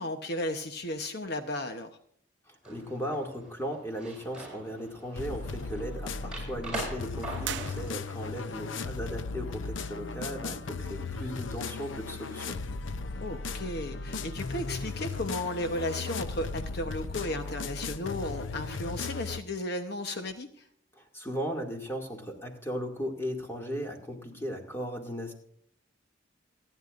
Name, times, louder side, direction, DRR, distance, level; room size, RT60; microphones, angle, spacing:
voice 1, 0.0-2.0 8.5-8.9 13.2-20.7, left 1 dB, 55° left, 6 dB, 1.0 m, -34 dB
voice 2, 2.5-12.6 21.0-25.3, equal, 15° left, 1 dB, 2.3 m, -37 dB
sound 1, 2.6-7.9, right 2 dB, 5° right, 7.3 m, -43 dB
sound 2, 5.2-19.4, left 4 dB, 80° left, 0.7 m, -36 dB
sound 3, 7.4-8.5, right 10 dB, 65° right, 0.6 m, -39 dB
28.0 x 10.0 x 2.6 m, 0.65 s
head